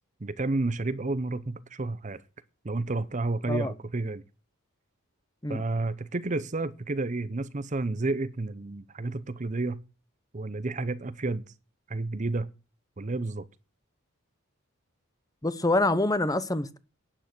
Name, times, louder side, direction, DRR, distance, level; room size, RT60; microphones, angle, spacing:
voice 1, 0.2-2.2 2.6-4.2 5.5-9.8 10.3-11.4 11.9-12.5 13.0-13.4, right 2 dB, 35° right, 0.7 m, -30 dB
voice 2, 15.4-16.8, left 2 dB, 15° left, 0.9 m, -26 dB
12.0 x 9.0 x 6.0 m
head